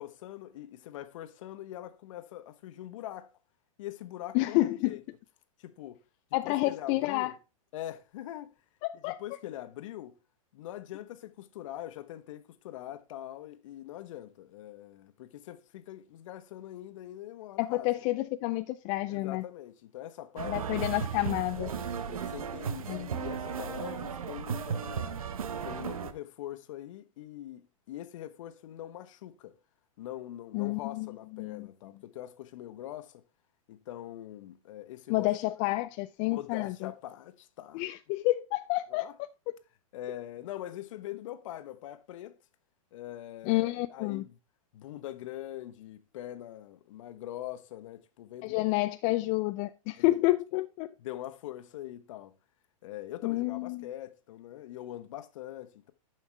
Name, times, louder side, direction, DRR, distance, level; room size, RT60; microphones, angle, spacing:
voice 1, 0.0-3.3 3.8-5.0 5.6-6.0 6.4-7.3 7.7-8.5 9.0-10.2 10.5-17.9 19.1-20.9 22.1-25.2 25.6-29.6 30.0-33.2 33.7-35.3 36.2-37.8 38.9-39.1 39.9-42.4 42.9-44.4 44.7-48.8 50.0-50.6 51.0-52.3 52.8-55.9, left 13 dB, 65° left, 1.2 m, -43 dB
voice 2, 4.3-4.9 6.3-7.3 8.8-9.2 17.6-19.4 20.5-21.7 22.9-23.1 30.5-31.1 31.4-31.7 35.1-36.9 37.7-39.1 43.4-44.2 48.4-50.9 53.2-53.9, left 19 dB, 45° left, 0.6 m, -29 dB
sound 1, 20.4-26.1, right 7 dB, 85° right, 0.9 m, -35 dB
11.0 x 5.6 x 3.3 m
hypercardioid pair, 110°, 18 cm